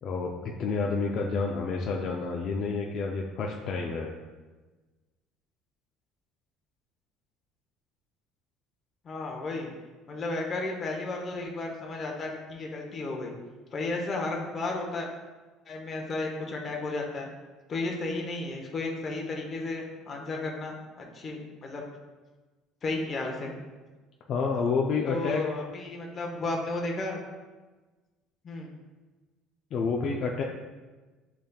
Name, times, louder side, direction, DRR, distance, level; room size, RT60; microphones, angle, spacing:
voice 1, 0.0-4.1 24.3-25.4 29.7-30.4, left 4 dB, 50° left, 0 dB, 0.4 m, -29 dB
voice 2, 9.0-9.7 10.1-13.3 13.7-15.1 15.7-17.3 17.7-20.7 21.1-21.8 22.8-23.5 25.1-27.2 28.4-28.7, left 2 dB, 35° left, 0 dB, 0.8 m, -33 dB
7.0 x 3.3 x 2.3 m, 1.3 s
supercardioid pair, 100°, 0 cm